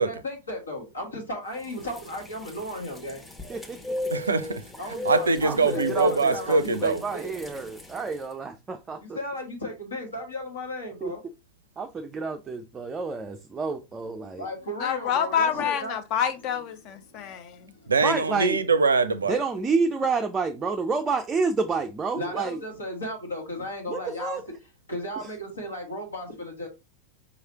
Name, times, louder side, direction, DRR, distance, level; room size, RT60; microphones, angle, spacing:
voice 1, 0.0-3.3 4.8-7.3 9.0-11.2 14.2-15.9 17.1-17.3 17.6-17.9 22.1-24.4 24.9-26.7, left 1 dB, 75° left, 1.8 m, -35 dB
sound 1, 1.6-8.2, left 3 dB, 10° left, 0.9 m, -36 dB
voice 2, 3.5-4.0 5.4-9.2 11.0-11.1 11.8-14.5 18.0-18.6 19.3-22.6 23.9-24.4, right 4 dB, 20° right, 0.4 m, -29 dB
voice 3, 4.1-4.6 5.0-7.0 17.9-19.4, right 4 dB, 75° right, 0.5 m, -23 dB
voice 4, 14.8-17.7, left 8 dB, 40° left, 0.7 m, -27 dB
4.9 x 3.2 x 2.8 m
figure-of-eight pair, 90°, 0 cm